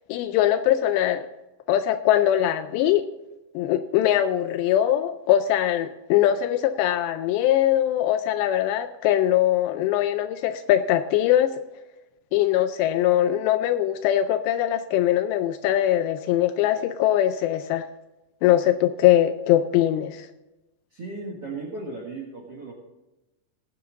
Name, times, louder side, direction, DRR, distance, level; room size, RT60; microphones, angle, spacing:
voice 1, 0.1-1.3 1.7-3.1 3.6-11.6 12.3-17.9 18.4-20.3, left 12 dB, 85° left, 10 dB, 2.5 m, -21 dB
voice 2, 20.9-22.7, right 3 dB, 65° right, -2 dB, 1.4 m, -36 dB
18.5 x 7.2 x 3.8 m, 1.0 s
omnidirectional pair, 5.3 m